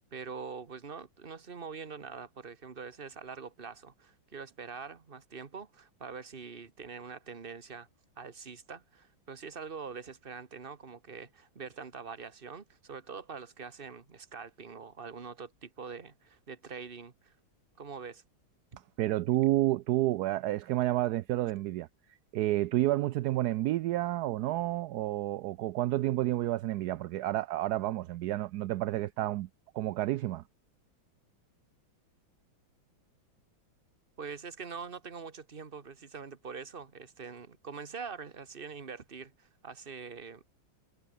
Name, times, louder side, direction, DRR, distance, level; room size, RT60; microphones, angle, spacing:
voice 1, 0.0-7.9 8.2-17.3 17.8-18.2 34.2-40.5, right 5 dB, 30° right, 1.6 m, -44 dB
voice 2, 19.0-29.5 29.7-30.4, right 15 dB, 75° right, 0.9 m, -30 dB
omnidirectional pair, 2.2 m